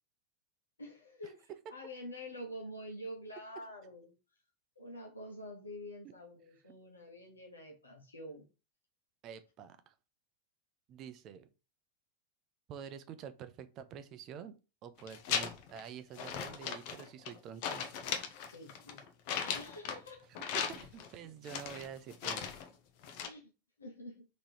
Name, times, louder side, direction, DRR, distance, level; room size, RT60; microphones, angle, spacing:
voice 1, 0.8-4.1 4.8-8.5 18.5-19.0 19.3-20.3 23.2-23.5 23.8-24.2, equal, 75° left, 1 dB, 1.0 m, -47 dB
voice 2, 9.2-9.9 10.9-11.5 12.7-14.6 14.8-17.9 20.5-22.5, right 8 dB, 35° right, 11 dB, 0.5 m, -47 dB
sound 1, 15.0-15.8 16.1-17.4 17.6-20.1 20.3-21.1 21.4-22.7 23.0-23.3, left 7 dB, 45° left, 0.7 m, -38 dB
3.7 x 3.0 x 4.3 m, 0.32 s
figure-of-eight pair, 90°, 0 cm